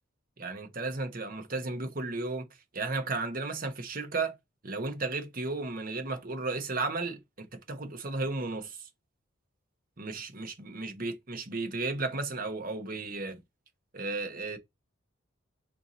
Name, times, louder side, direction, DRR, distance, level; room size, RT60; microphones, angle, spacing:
voice 1, 0.4-2.5 2.7-4.3 4.6-8.8 10.0-13.4 13.9-14.6, right 3 dB, 45° right, 1.0 m, -34 dB
4.5 x 2.7 x 4.1 m
head